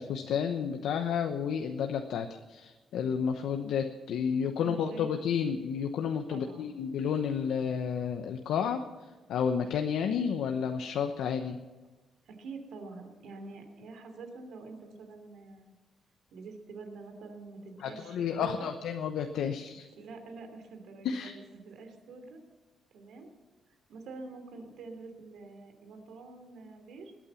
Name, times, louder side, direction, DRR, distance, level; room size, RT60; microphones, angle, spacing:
voice 1, 0.0-8.8 9.3-11.6 17.8-19.9 21.0-21.3, left 7 dB, 85° left, 6 dB, 0.9 m, -31 dB
voice 2, 4.5-5.1 6.3-6.8 12.3-15.7 16.3-18.7 19.9-22.4 22.9-23.3 23.9-27.1, right 3 dB, 80° right, 5 dB, 2.9 m, -46 dB
21.0 x 8.8 x 7.1 m, 1.3 s
cardioid pair, 130°, 0 cm